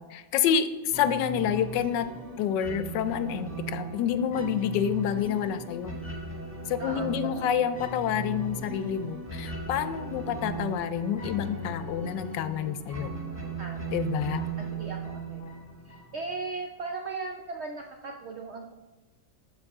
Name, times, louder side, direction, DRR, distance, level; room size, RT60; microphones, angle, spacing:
voice 1, 0.0-2.1 2.4-6.0 6.7-13.1 13.9-14.5, left 8 dB, 85° left, 12 dB, 1.2 m, -28 dB
sound 1, 0.9-16.4, right 3 dB, 10° right, 1.1 m, -37 dB
voice 2, 6.8-7.1 7.4-7.5 13.6-14.0 14.6-15.5 15.9-18.7, right 3 dB, 75° right, 2 dB, 0.6 m, -38 dB
12.5 x 4.2 x 3.5 m, 1.2 s
omnidirectional pair, 1.9 m